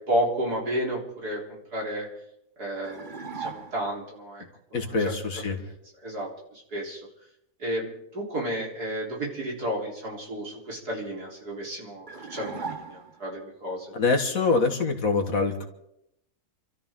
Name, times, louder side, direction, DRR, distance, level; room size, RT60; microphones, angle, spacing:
voice 1, 0.1-2.1 2.6-4.4 4.7-5.1 5.6-5.7 6.0-7.0 7.6-13.9, right 1 dB, 85° right, -2 dB, 4.4 m, -32 dB
sound 1, 2.8-4.0 12.1-13.4, right 5 dB, 35° right, 0.9 m, -38 dB
voice 2, 4.7-5.6 13.9-15.7, left 4 dB, 60° left, 3 dB, 2.2 m, -24 dB
28.5 x 13.0 x 3.8 m, 0.80 s
omnidirectional pair, 1.6 m